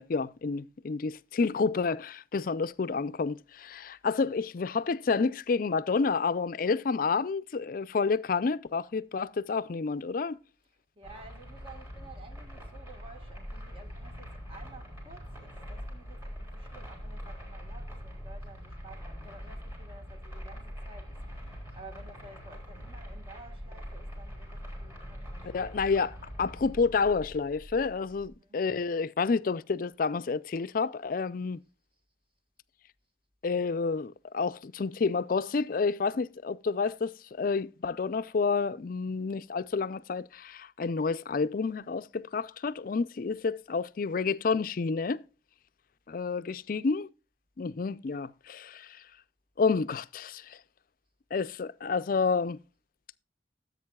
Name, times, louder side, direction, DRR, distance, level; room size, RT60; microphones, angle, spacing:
voice 1, 0.0-10.4 25.4-31.6 33.4-45.2 46.1-47.1 47.6-49.0 49.6-50.6 51.3-52.6, left 4 dB, 55° left, 0.4 m, -29 dB
voice 2, 10.9-25.8 28.4-28.6 46.4-46.9, right 2 dB, 30° right, 1.4 m, -52 dB
sound 1, 11.0-28.3, equal, 15° right, 3.8 m, -43 dB
15.0 x 8.1 x 2.3 m
head